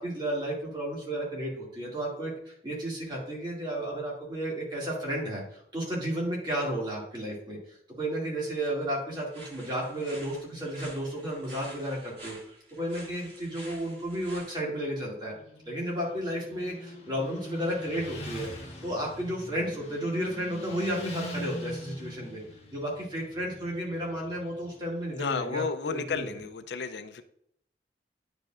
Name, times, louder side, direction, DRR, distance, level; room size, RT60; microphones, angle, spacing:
voice 1, 0.0-12.4 12.7-15.3 15.7-22.4 22.7-26.3, right 1 dB, 25° right, -4 dB, 2.1 m, -33 dB
sound 1, 9.3-14.6, right 1 dB, 70° right, 1.9 m, -48 dB
Motorcycle, 15.3-25.0, left 1 dB, 35° left, 1.3 m, -43 dB
voice 2, 25.1-27.2, left 5 dB, 75° left, 10 dB, 0.4 m, -33 dB
9.5 x 5.0 x 2.4 m, 0.72 s
head